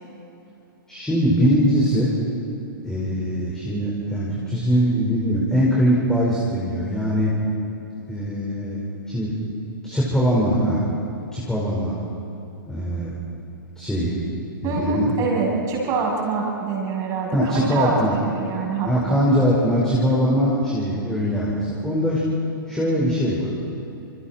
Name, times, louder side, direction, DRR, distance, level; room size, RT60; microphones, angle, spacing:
voice 1, 0.9-2.1 2.8-7.4 8.1-9.4 9.8-10.8 11.3-11.9 12.7-13.2 13.8-14.2 14.6-15.1 17.3-18.2 18.8-22.2 22.7-23.5, equal, 5° left, -6 dB, 4.9 m, -22 dB
voice 2, 14.6-19.2, right 4 dB, 30° right, -3 dB, 7.8 m, -25 dB
29.0 x 28.0 x 4.5 m, 2.9 s
figure-of-eight pair, 115°, 12 cm